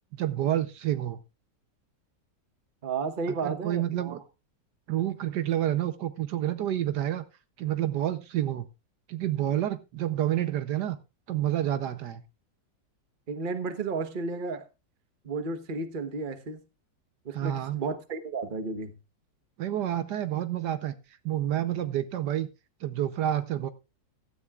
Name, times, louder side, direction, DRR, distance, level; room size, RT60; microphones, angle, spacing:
voice 1, 0.1-1.2 3.4-4.2 4.9-7.2 7.6-8.7 9.1-11.0 11.3-12.2 17.3-17.8 19.6-20.9 21.2-22.5 22.8-23.7, right 12 dB, 70° right, 1.3 m, -29 dB
voice 2, 2.8-4.2 13.3-14.7 15.2-16.6 17.2-18.9, right 4 dB, 35° right, 1.1 m, -33 dB
16.0 x 13.0 x 2.4 m
omnidirectional pair, 1.9 m